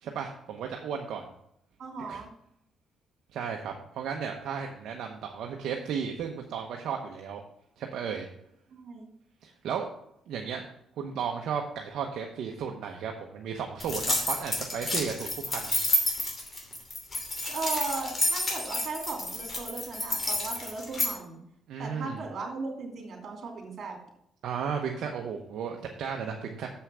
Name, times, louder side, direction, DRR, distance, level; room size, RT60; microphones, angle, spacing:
voice 1, 0.0-1.2 2.1-2.2 3.3-7.4 7.8-8.3 9.4-9.9 10.3-10.7 11.0-15.8 21.7-22.2 24.4-26.7, right 7 dB, 75° right, 2 dB, 0.9 m, -34 dB
voice 2, 1.8-2.3 8.7-9.1 17.5-21.4 21.8-24.0, right 4 dB, 60° right, 2 dB, 2.6 m, -37 dB
sound 1, 13.8-21.1, left 1 dB, 30° left, 2.8 m, -30 dB
6.9 x 5.7 x 6.2 m, 0.74 s
cardioid pair, 90°, 0 cm